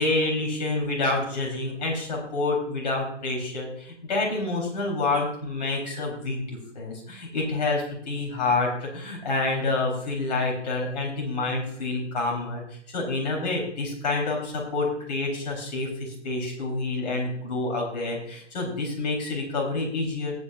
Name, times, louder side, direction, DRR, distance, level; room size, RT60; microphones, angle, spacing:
voice 1, 0.0-12.6 12.9-20.3, left 3 dB, 35° left, -1 dB, 4.0 m, -28 dB
18.5 x 8.4 x 2.6 m, 0.67 s
figure-of-eight pair, 135°, 35 cm